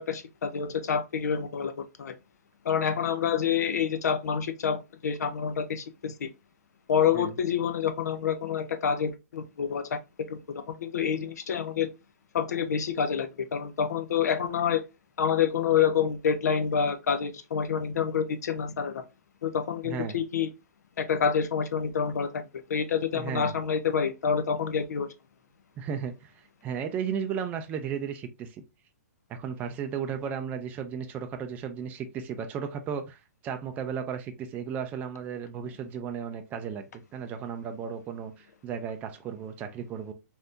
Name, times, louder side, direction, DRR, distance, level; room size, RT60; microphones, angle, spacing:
voice 1, 0.0-2.1 2.6-6.3 6.9-10.0 10.3-11.9 12.3-14.8 15.2-19.0 19.4-20.5 21.0-22.4 22.7-25.1, left 7 dB, 80° left, 0.5 m, -27 dB
voice 2, 19.8-20.2 23.1-23.5 25.8-28.6 29.3-40.1, right 7 dB, 20° right, 0.3 m, -35 dB
3.3 x 2.7 x 2.5 m
hypercardioid pair, 140°, 9 cm